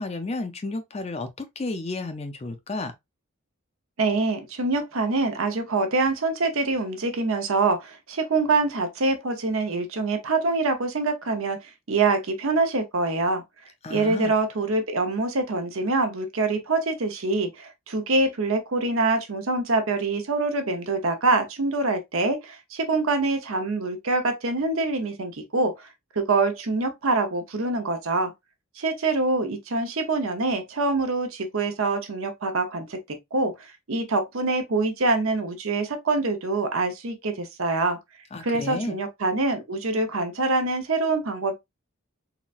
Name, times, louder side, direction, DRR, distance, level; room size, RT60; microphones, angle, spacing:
voice 1, 0.0-2.9 13.8-14.3 38.3-39.0, left 2 dB, 30° left, 0.4 m, -32 dB
voice 2, 4.0-11.6 11.9-13.4 13.9-25.9 26.2-28.3 28.8-33.5 33.9-38.0 38.4-41.6, right 3 dB, 75° right, 0.7 m, -25 dB
3.8 x 2.2 x 2.4 m
head